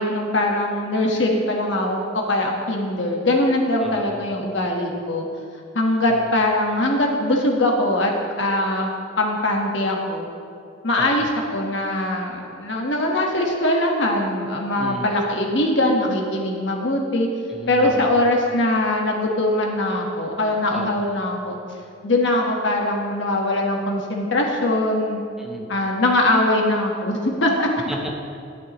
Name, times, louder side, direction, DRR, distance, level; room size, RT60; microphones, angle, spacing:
voice 1, 0.0-5.2 5.7-8.1 8.4-8.9 9.2-10.3 10.8-17.3 17.7-21.6 22.0-25.2 25.7-27.7, left 1 dB, 65° left, 0 dB, 1.4 m, -21 dB
voice 2, 3.8-4.1 6.1-6.3 11.0-11.2 14.8-15.1 17.5-18.1 20.7-21.0 25.4-25.7 27.9-28.4, equal, ahead, 0 dB, 0.8 m, -33 dB
11.5 x 10.5 x 3.1 m, 2.5 s
head